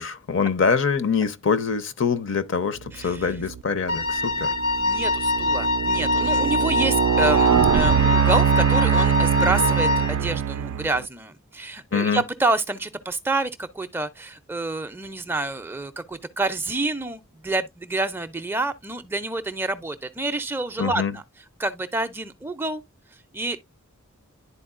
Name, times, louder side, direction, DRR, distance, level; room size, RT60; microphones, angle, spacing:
voice 1, 0.0-4.5 11.9-12.2 20.8-21.1, left 5 dB, 60° left, 0.6 m, -24 dB
voice 2, 2.9-3.4 4.3-21.2 21.6-22.8 23.1-23.6, right 2 dB, 10° right, 0.4 m, -28 dB
sound 1, 3.3-3.6 4.2-11.0, right 8 dB, 90° right, 0.3 m, -22 dB
Wind instrument woodwind instrument, 3.9-10.2, left 2 dB, 75° left, 1.1 m, -24 dB
11.0 x 4.2 x 2.4 m
head